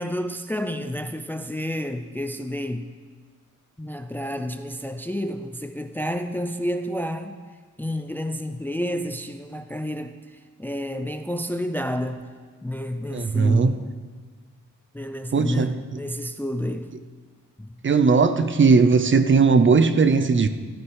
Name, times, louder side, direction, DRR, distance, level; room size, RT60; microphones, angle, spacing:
voice 1, 0.0-2.9 3.8-7.4 7.8-10.1 10.6-12.2 12.6-13.8 14.9-16.9 17.6-17.7, equal, 5° left, 8 dB, 0.4 m, -30 dB
voice 2, 13.1-13.8 15.3-15.8 17.8-20.5, right 4 dB, 40° right, 10 dB, 0.6 m, -18 dB
14.5 x 12.5 x 4.7 m, 1.5 s
wide cardioid pair, 155°, 31 cm